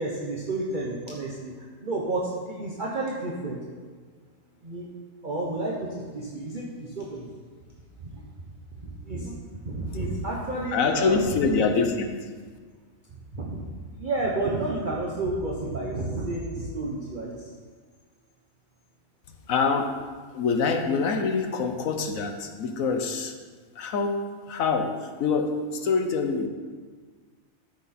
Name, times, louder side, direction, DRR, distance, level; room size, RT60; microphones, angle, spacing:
voice 1, 0.0-3.6 4.6-4.9 5.2-7.4 8.0-8.2 8.7-9.4 9.6-11.6 13.3-13.7 14.0-17.5, right 2 dB, 40° right, -4 dB, 1.1 m, -31 dB
voice 2, 10.7-12.3 19.5-20.0 20.3-23.3 23.7-26.5, left 4 dB, 75° left, 5 dB, 1.3 m, -25 dB
13.0 x 6.2 x 4.3 m, 1.5 s
omnidirectional pair, 1.4 m